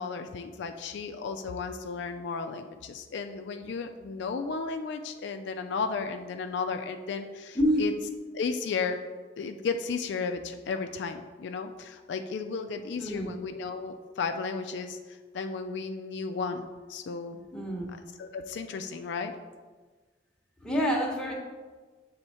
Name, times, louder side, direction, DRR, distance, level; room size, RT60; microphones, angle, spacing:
voice 1, 0.0-7.9 8.3-9.0 9.4-17.4 18.2-19.3, left 5 dB, 70° left, 6 dB, 0.4 m, -34 dB
voice 2, 7.5-7.9 13.0-13.3 17.5-17.8 20.6-21.3, equal, 5° left, -3 dB, 1.0 m, -27 dB
6.8 x 3.5 x 4.2 m, 1.4 s
head